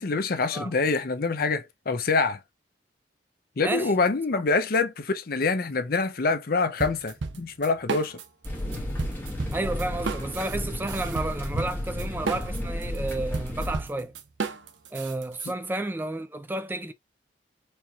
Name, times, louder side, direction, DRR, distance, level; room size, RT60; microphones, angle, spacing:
voice 1, 0.0-2.4 3.6-8.2, left 4 dB, 55° left, 0.6 m, -25 dB
voice 2, 3.6-3.9 9.5-14.1 14.9-16.9, right 2 dB, 10° right, 0.3 m, -31 dB
sound 1, 6.8-8.5 8.7-15.5, right 4 dB, 80° right, 0.7 m, -33 dB
sound 2, 8.4-13.8, left 1 dB, 10° left, 1.1 m, -33 dB
4.4 x 2.9 x 2.3 m
head